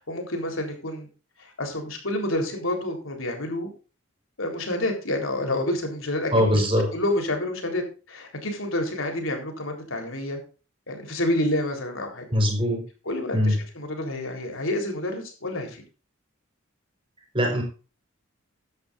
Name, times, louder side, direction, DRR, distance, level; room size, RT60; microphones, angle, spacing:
voice 1, 0.1-1.1 1.4-3.7 4.4-6.6 6.9-10.4 10.9-12.2 13.1-15.8, left 1 dB, 80° left, 4 dB, 3.9 m, -28 dB
voice 2, 6.3-6.9 12.3-12.8 13.3-13.6 17.3-17.6, equal, 25° right, 2 dB, 4.5 m, -21 dB
15.0 x 11.0 x 2.6 m, 0.35 s
head